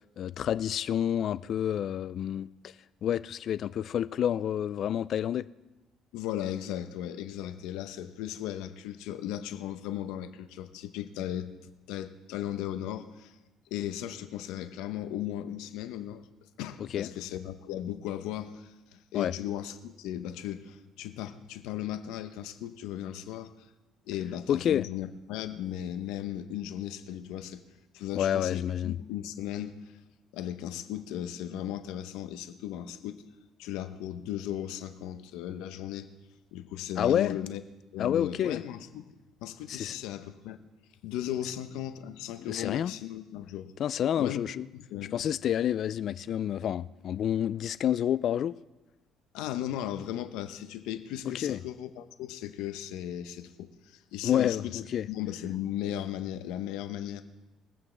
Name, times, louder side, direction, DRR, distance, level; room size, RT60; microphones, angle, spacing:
voice 1, 0.2-2.7 3.0-5.5 16.8-17.1 19.1-19.3 24.5-24.9 28.1-29.0 37.0-37.4 38.0-38.6 39.7-40.0 42.4-42.9 43.8-44.7 45.1-48.6 51.2-51.6 54.2-55.1, left 10 dB, 55° left, 0.3 m, -29 dB
voice 2, 6.1-11.5 11.9-13.4 13.7-16.3 16.6-23.7 24.1-27.6 27.9-29.9 30.3-33.2 33.6-36.1 36.5-37.6 37.9-39.1 39.4-40.6 41.0-43.7 44.2-44.4 44.7-45.2 49.3-54.8 55.1-57.2, left 11 dB, 85° left, 0.8 m, -36 dB
23.5 x 8.6 x 3.3 m
cardioid pair, 110°, 0 cm